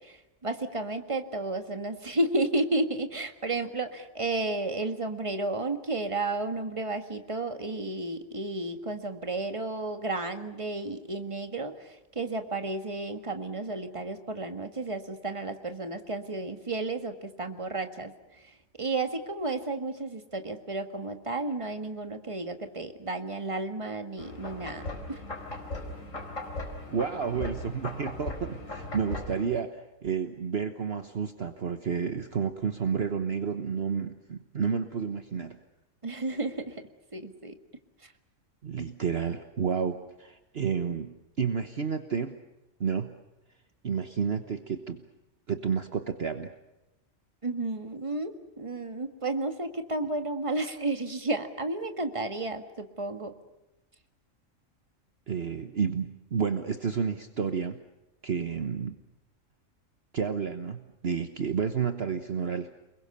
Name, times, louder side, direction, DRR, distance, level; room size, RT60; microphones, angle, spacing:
voice 1, 0.0-25.2 36.0-36.8 37.1-37.6 38.0-38.1 47.4-53.3, right 2 dB, 25° right, 7 dB, 1.8 m, -32 dB
sound 1, 24.2-29.5, left 2 dB, 70° left, 4.9 m, -38 dB
voice 2, 26.9-35.6 38.6-42.4 42.8-43.1 43.8-45.0 45.5-46.5 55.3-57.8 58.2-58.9 60.1-62.7, right 6 dB, 50° right, 8 dB, 1.3 m, -30 dB
29.5 x 21.5 x 6.8 m, 0.96 s
omnidirectional pair, 1.4 m